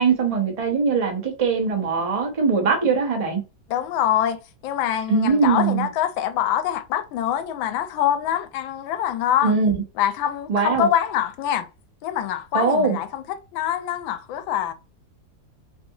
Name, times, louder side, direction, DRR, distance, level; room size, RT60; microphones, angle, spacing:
voice 1, 0.0-3.4 5.1-5.9 9.4-9.8 10.5-10.9 12.5-13.0, right 4 dB, 35° right, 0.5 m, -21 dB
voice 2, 3.7-9.6 10.0-11.7 12.0-14.7, left 10 dB, 90° left, 1.3 m, -25 dB
3.4 x 2.7 x 2.7 m
omnidirectional pair, 2.1 m